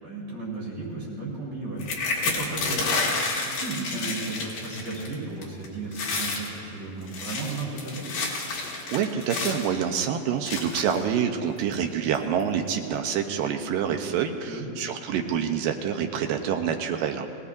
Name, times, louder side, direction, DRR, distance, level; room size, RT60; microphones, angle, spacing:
voice 1, 0.0-8.1 14.5-14.7, right 3 dB, 45° right, -6 dB, 5.0 m, -35 dB
sound 1, 1.8-5.1 5.4-5.7 5.9-6.5 7.0-9.7 10.5-11.0 11.7-11.8 12.1-12.4, left 3 dB, 65° left, 3.8 m, -29 dB
voice 2, 8.9-17.3, right 8 dB, 75° right, 5 dB, 2.3 m, -27 dB
23.5 x 18.0 x 2.7 m, 2.5 s
omnidirectional pair, 4.3 m